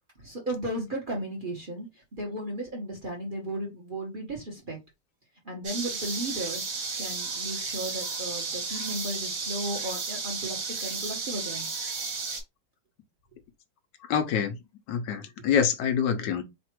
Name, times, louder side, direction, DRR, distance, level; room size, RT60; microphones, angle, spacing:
voice 1, 0.2-1.9 2.1-4.8 5.4-6.6 7.0-11.7, right 1 dB, 35° right, 1.0 m, -35 dB
sound 1, 5.6-12.4, right 4 dB, 55° right, 1.5 m, -33 dB
voice 2, 14.1-14.6 14.9-16.4, left 7 dB, 75° left, 1.2 m, -26 dB
3.3 x 2.5 x 4.5 m
omnidirectional pair, 1.9 m